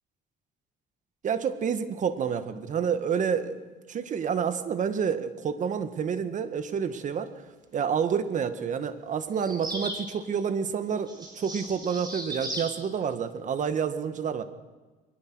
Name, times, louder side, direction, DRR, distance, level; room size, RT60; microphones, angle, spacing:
voice 1, 1.2-3.6 3.9-7.3 7.7-14.4, right 7 dB, 50° right, 10 dB, 1.7 m, -29 dB
sound 1, 9.4-10.1 11.1-12.7, right 1 dB, 25° right, 5.8 m, -36 dB
23.0 x 20.0 x 6.3 m, 1.3 s
cardioid pair, 110°, 17 cm